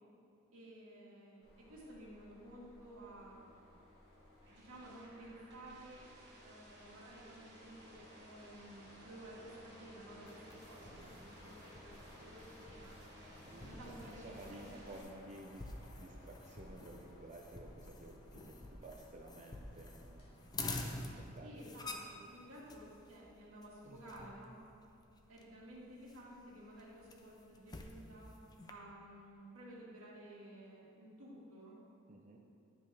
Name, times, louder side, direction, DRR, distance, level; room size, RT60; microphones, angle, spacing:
voice 1, 0.5-3.7 4.4-6.0 6.4-13.0 13.6-15.0 21.4-24.6 25.3-28.3 28.7-31.8, right 1 dB, 85° right, -5 dB, 1.8 m, -54 dB
sound 1, 1.4-20.8, left 1 dB, 75° left, 1.8 m, -59 dB
sound 2, 4.0-15.0, right 2 dB, 55° right, 1.4 m, -62 dB
sound 3, 10.3-28.7, left 2 dB, 20° left, 0.4 m, -50 dB
voice 2, 10.8-11.2 13.4-15.7 16.0-20.4 20.9-21.7 23.8-24.0 32.1-32.4, right 2 dB, 35° right, -1 dB, 0.5 m, -54 dB
9.7 x 5.3 x 3.3 m, 2.5 s
head